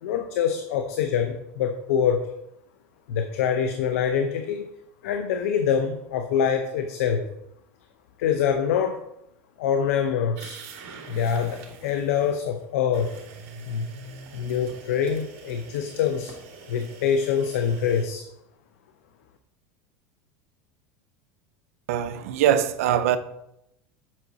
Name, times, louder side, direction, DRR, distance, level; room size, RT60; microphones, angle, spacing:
voice 1, 0.0-2.3 3.1-4.7 5.0-7.2 8.2-9.0 9.6-10.6 11.1-13.1 13.7-13.9 14.3-16.3 16.7-18.2, left 7 dB, 85° left, 0.7 m, -25 dB
sound 1, 10.4-12.3 12.9-18.0, right 4 dB, 65° right, 2.0 m, -44 dB
voice 2, 21.9-23.2, right 10 dB, 80° right, 0.6 m, -22 dB
7.6 x 5.8 x 3.9 m
supercardioid pair, 130°, 8 cm